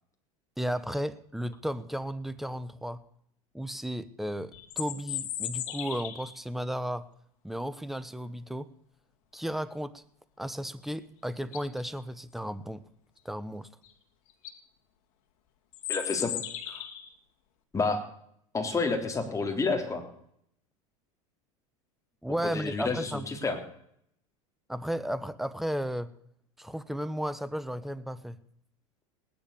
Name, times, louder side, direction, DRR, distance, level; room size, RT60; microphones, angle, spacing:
voice 1, 0.6-3.0 3.5-7.1 7.4-8.7 9.3-10.0 10.4-12.8 13.2-13.7 22.2-23.3 24.7-26.1 26.6-28.4, equal, ahead, 15 dB, 1.0 m, -34 dB
sound 1, 4.5-6.4 10.9-11.0 11.4-11.8 13.8-13.9 14.3-14.6 15.7-17.1, left 11 dB, 70° left, 2.3 m, -36 dB
voice 2, 15.9-16.3 16.7-16.8 17.7-18.0 18.5-20.0 22.4-23.6, left 4 dB, 15° left, 4 dB, 3.8 m, -29 dB
18.5 x 10.5 x 6.9 m, 0.69 s
hypercardioid pair, 105°, 18 cm